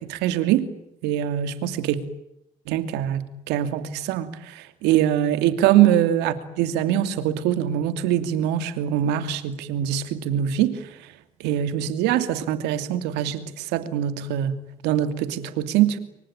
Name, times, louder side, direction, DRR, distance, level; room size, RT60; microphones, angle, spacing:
voice 1, 0.1-0.7 1.0-2.0 2.7-11.1 11.4-14.5 14.8-16.0, right 11 dB, 80° right, 11 dB, 2.7 m, -23 dB
27.5 x 24.5 x 8.9 m, 0.82 s
supercardioid pair, 70°, 17 cm